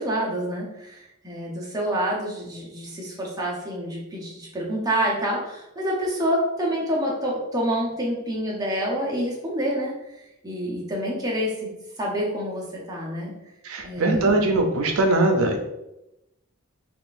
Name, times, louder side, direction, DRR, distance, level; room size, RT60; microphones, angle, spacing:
voice 1, 0.0-9.9 10.4-11.7 12.0-13.3 13.8-14.3, equal, 15° right, -4 dB, 0.8 m, -27 dB
voice 2, 13.6-15.6, right 2 dB, 80° right, 3 dB, 0.5 m, -21 dB
3.6 x 2.5 x 2.5 m, 0.91 s
head